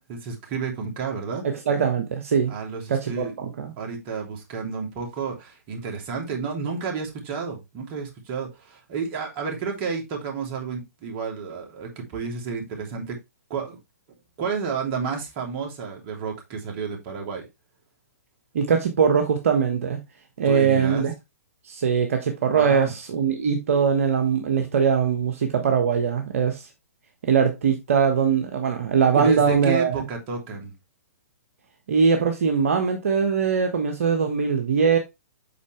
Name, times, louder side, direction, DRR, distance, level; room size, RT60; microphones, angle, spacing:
voice 1, 0.0-1.4 2.5-3.3 3.8-13.2 13.5-13.8 14.4-17.4 20.4-21.1 22.5-22.9 29.1-30.7, right 5 dB, 35° right, 3.1 m, -31 dB
voice 2, 1.4-2.5 2.9-3.7 18.5-20.0 20.4-21.1 21.6-26.7 27.3-29.9 31.9-35.0, right 6 dB, 60° right, 1.3 m, -21 dB
8.3 x 5.5 x 3.3 m
figure-of-eight pair, 120°, 8 cm